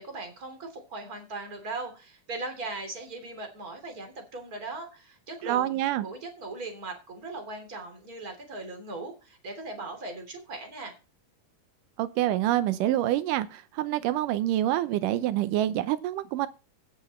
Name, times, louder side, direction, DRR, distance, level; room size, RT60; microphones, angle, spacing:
voice 1, 0.0-10.9, right 3 dB, 30° right, 3.4 m, -39 dB
voice 2, 5.4-6.1 12.0-16.5, right 13 dB, 90° right, 2.3 m, -26 dB
17.0 x 5.8 x 4.3 m
omnidirectional pair, 3.7 m